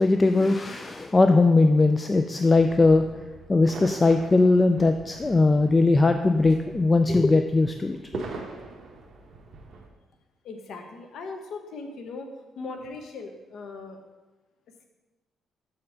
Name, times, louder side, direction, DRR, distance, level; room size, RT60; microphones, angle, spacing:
voice 1, 0.0-3.1 3.5-8.2, left 3 dB, 25° left, 7 dB, 0.3 m, -20 dB
sound 1, 2.5-9.9, right 3 dB, 55° right, 1.0 m, -42 dB
voice 2, 10.4-14.0, left 3 dB, 70° left, 5 dB, 1.0 m, -39 dB
6.3 x 4.4 x 5.7 m, 1.2 s
cardioid pair, 90°, 0 cm